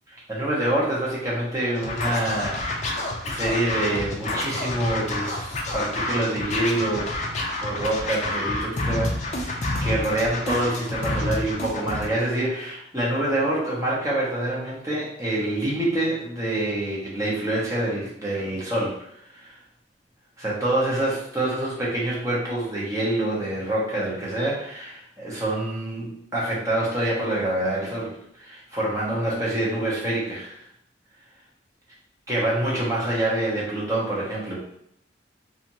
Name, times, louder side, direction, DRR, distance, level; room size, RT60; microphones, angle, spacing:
voice 1, 0.1-7.1 7.6-19.6 20.4-28.1 28.3-30.6 32.3-34.6, right 1 dB, 15° right, -6 dB, 0.8 m, -26 dB
Scratching (performance technique), 1.8-12.1, left 2 dB, 35° left, 0.4 m, -29 dB
2.9 x 2.5 x 2.6 m, 0.72 s
head